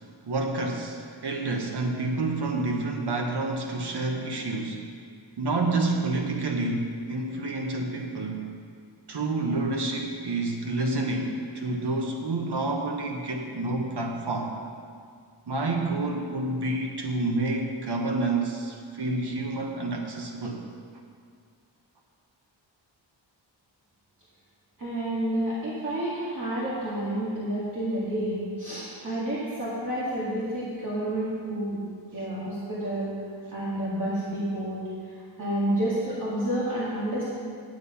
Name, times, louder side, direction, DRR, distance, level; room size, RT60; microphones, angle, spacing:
voice 1, 0.2-4.9 5.4-8.5 9.1-14.6 15.5-20.6, right 2 dB, 60° right, 1 dB, 1.1 m, -29 dB
voice 2, 24.8-31.8 32.1-33.1 33.5-37.3, right 1 dB, 45° right, -9 dB, 2.1 m, -30 dB
10.0 x 7.6 x 5.6 m, 2.1 s
wide cardioid pair, 170°, 45 cm